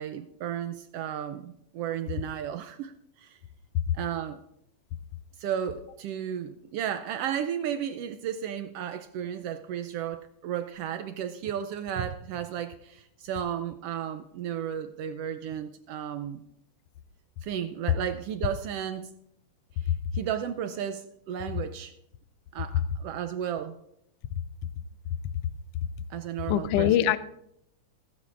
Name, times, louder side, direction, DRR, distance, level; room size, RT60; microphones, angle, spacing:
voice 1, 0.0-3.4 3.9-4.4 5.4-16.4 17.4-19.1 19.8-21.9 22.5-23.8 26.1-26.9, right 9 dB, 80° right, 9 dB, 1.4 m, -34 dB
voice 2, 26.4-27.2, left 11 dB, 90° left, 14 dB, 1.3 m, -23 dB
15.5 x 15.0 x 2.5 m, 0.77 s
omnidirectional pair, 3.3 m